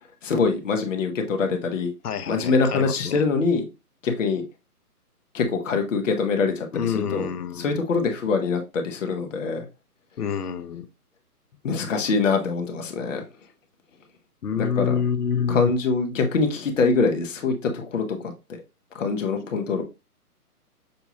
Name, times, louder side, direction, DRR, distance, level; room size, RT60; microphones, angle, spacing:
voice 1, 0.2-1.9 2.3-3.6 4.0-4.4 5.3-6.7 6.9-7.3 7.6-9.6 11.6-13.2 14.6-14.9 15.5-18.2 18.9-19.8, left 4 dB, 55° left, 1.4 m, -24 dB
voice 2, 2.0-3.2 6.7-7.8 10.2-10.9 14.4-15.7, left 7 dB, 75° left, 0.9 m, -27 dB
6.8 x 2.7 x 2.9 m
hypercardioid pair, 150°, 46 cm